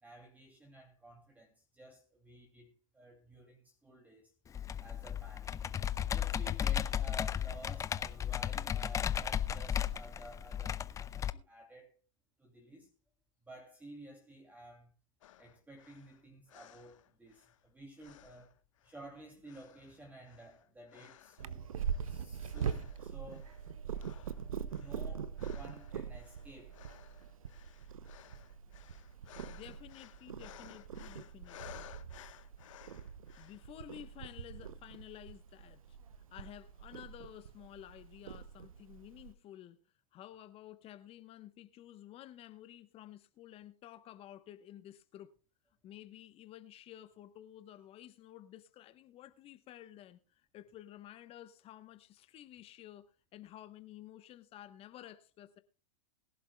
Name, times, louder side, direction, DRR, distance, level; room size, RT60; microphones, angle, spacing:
voice 1, 0.0-4.3 4.8-5.6 6.1-12.0 12.4-12.9 13.4-14.9 15.4-18.5 18.8-21.7 22.0-23.5 24.6-26.8 28.6-28.9, right 1 dB, 10° right, 2.5 m, -53 dB
Computer keyboard, 4.5-11.3, left 9 dB, 20° left, 0.5 m, -35 dB
sound 1, 15.2-17.7 18.0-19.1 19.4-21.5 21.8-22.2 22.5-23.7 24.0-33.7, left 13 dB, 70° left, 1.1 m, -57 dB
Purr, 21.4-39.3, right 7 dB, 85° right, 0.8 m, -43 dB
voice 2, 29.2-31.9 33.4-36.0 36.3-39.8 40.1-45.3 45.8-55.6, left 12 dB, 35° left, 1.0 m, -52 dB
21.5 x 11.5 x 2.3 m
hypercardioid pair, 105°, 17 cm